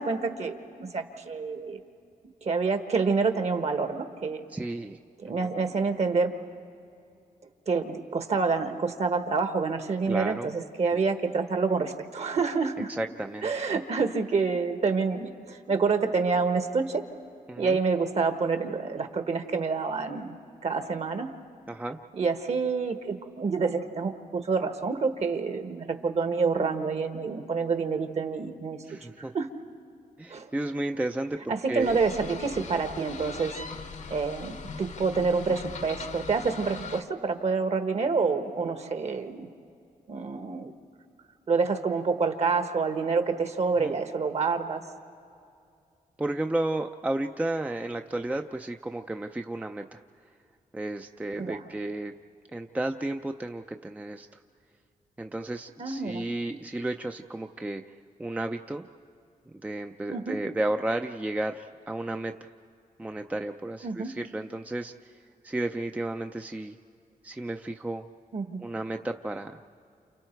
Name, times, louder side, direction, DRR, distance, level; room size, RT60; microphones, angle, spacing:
voice 1, 0.0-1.8 2.4-4.4 5.2-6.3 7.7-12.9 13.4-17.0 17.6-20.3 20.6-21.3 22.1-28.8 29.2-29.5 30.3-30.5 31.5-33.6 34.1-39.5 40.1-40.7 41.5-44.9 51.4-51.7 55.8-56.2 60.1-60.4 63.8-64.1 68.3-68.6, right 4 dB, 50° right, 7 dB, 1.4 m, -27 dB
voice 2, 4.5-5.0 5.2-5.3 10.1-10.5 10.9-11.0 12.9-13.5 17.5-17.8 21.7-22.0 28.8-29.3 30.2-32.0 43.8-43.9 46.2-50.0 50.7-52.1 52.5-54.3 55.2-57.8 58.2-58.9 59.6-62.5 63.0-64.9 65.4-66.8 67.2-68.0 68.6-69.6, right 1 dB, 10° right, 5 dB, 0.5 m, -32 dB
sound 1, 31.8-37.0, left 5 dB, 60° left, 0.9 m, -40 dB
29.5 x 29.0 x 4.6 m, 2.5 s
wide cardioid pair, 145°, 14 cm